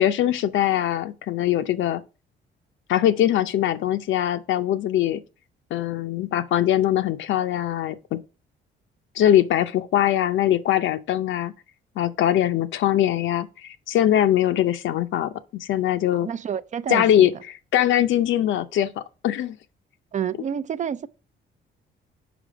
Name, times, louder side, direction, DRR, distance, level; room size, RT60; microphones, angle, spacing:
voice 1, 0.0-2.0 2.9-5.2 5.7-8.2 9.2-11.5 12.0-16.3 16.9-19.6, left 11 dB, 75° left, 0.6 m, -22 dB
voice 2, 16.1-17.3 20.1-21.1, right 8 dB, 40° right, 0.4 m, -29 dB
5.0 x 5.0 x 5.0 m
cardioid pair, 90°, 20 cm